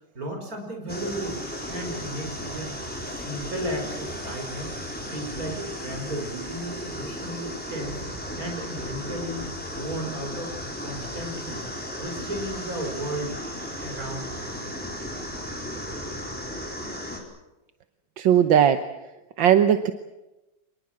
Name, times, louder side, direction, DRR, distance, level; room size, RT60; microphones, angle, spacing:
voice 1, 0.1-1.4 1.7-2.7 3.0-4.8 5.1-8.0 8.4-9.5 9.7-10.5 10.8-11.6 11.9-13.4 13.8-14.7, right 1 dB, 45° right, 3 dB, 6.0 m, -34 dB
sound 1, 0.9-17.2, equal, 5° left, 4.4 m, -35 dB
voice 2, 18.2-18.8 19.4-19.9, right 9 dB, 80° right, 9 dB, 1.7 m, -18 dB
26.5 x 20.5 x 7.6 m, 0.98 s
omnidirectional pair, 2.1 m